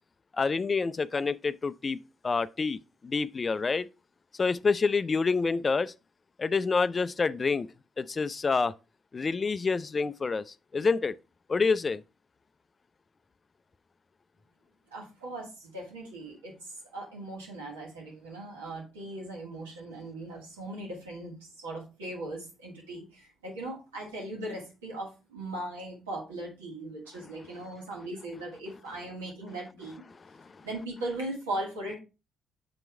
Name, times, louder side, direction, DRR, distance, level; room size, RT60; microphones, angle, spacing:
voice 1, 0.4-3.9 4.4-5.9 6.4-7.7 8.0-8.7 9.1-11.1 11.5-12.0, left 4 dB, 35° left, 0.3 m, -27 dB
voice 2, 14.9-30.0 30.6-32.0, right 1 dB, 80° right, 1.9 m, -39 dB
7.0 x 4.5 x 3.2 m
figure-of-eight pair, 45°, 0 cm